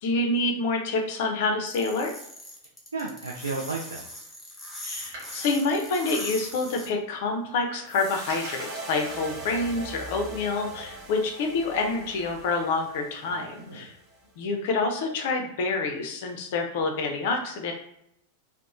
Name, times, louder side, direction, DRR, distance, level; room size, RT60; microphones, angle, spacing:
voice 1, 0.0-2.1 4.8-13.9 14.4-17.7, left 3 dB, 50° left, 3 dB, 0.4 m, -27 dB
sound 1, 1.7-6.9, left 1 dB, 5° left, 0.8 m, -39 dB
voice 2, 2.9-4.0 13.3-13.9, right 3 dB, 75° right, -2 dB, 0.4 m, -34 dB
Door, 4.9-6.7 7.7-10.6 11.5-12.6 12.9-13.0, right 1 dB, 55° right, 1.0 m, -48 dB
sound 2, 7.9-14.2, right 2 dB, 30° right, 0.6 m, -41 dB
2.9 x 2.0 x 2.3 m, 0.77 s
figure-of-eight pair, 90°, 0 cm